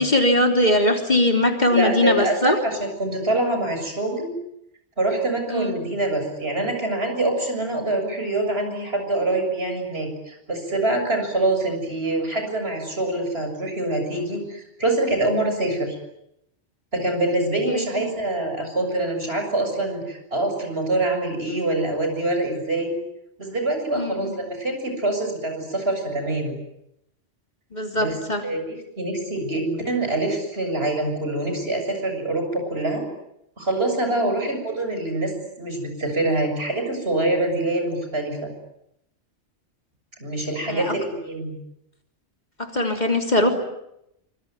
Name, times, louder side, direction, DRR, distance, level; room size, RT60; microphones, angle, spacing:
voice 1, 0.0-2.6 5.5-5.7 17.7-17.9 23.9-24.3 27.7-28.4 40.7-40.9 42.6-43.5, left 1 dB, 40° left, 4 dB, 3.6 m, -21 dB
voice 2, 1.7-4.3 5.0-16.0 16.9-22.9 23.4-26.6 27.9-28.2 28.4-33.0 33.6-35.3 35.6-38.5 40.2-41.5, right 2 dB, 60° right, 4 dB, 7.4 m, -25 dB
25.5 x 24.0 x 9.6 m, 0.81 s
omnidirectional pair, 1.2 m